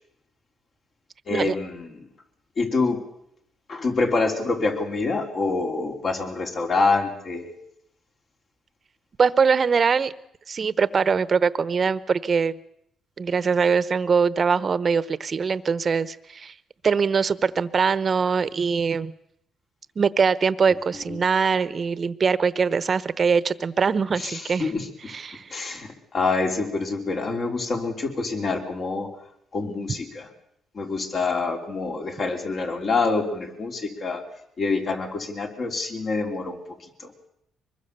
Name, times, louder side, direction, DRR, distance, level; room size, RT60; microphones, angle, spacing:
voice 1, 1.3-1.9 2.6-3.0 3.7-7.5 24.2-24.9 25.5-29.1 29.5-30.3 30.8-34.2 34.6-36.6 37.0-37.3, left 3 dB, 50° left, 2 dB, 3.8 m, -26 dB
voice 2, 9.2-10.1 10.5-12.6 13.2-16.5 16.8-19.1 20.0-24.7 25.1-25.6, right 5 dB, 40° right, 16 dB, 0.9 m, -22 dB
24.0 x 21.0 x 6.9 m, 0.75 s
cardioid pair, 90°, 0 cm